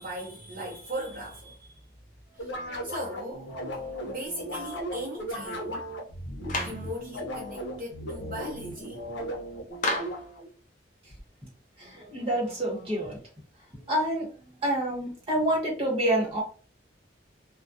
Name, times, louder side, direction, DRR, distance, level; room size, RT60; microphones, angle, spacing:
voice 1, 0.0-1.9 2.3-2.6 2.8-3.5 4.0-5.8 6.6-9.0, equal, 45° right, 0.6 m, -38 dB
sound 1, 2.4-10.5, equal, 75° left, 0.7 m, -36 dB
Clapping, 6.5-6.9 9.8-10.3, left 2 dB, 40° left, 0.5 m, -29 dB
voice 2, 11.8-13.2 13.9-14.3 14.6-16.4, right 1 dB, 30° right, 1.0 m, -27 dB
2.3 x 2.1 x 2.6 m
head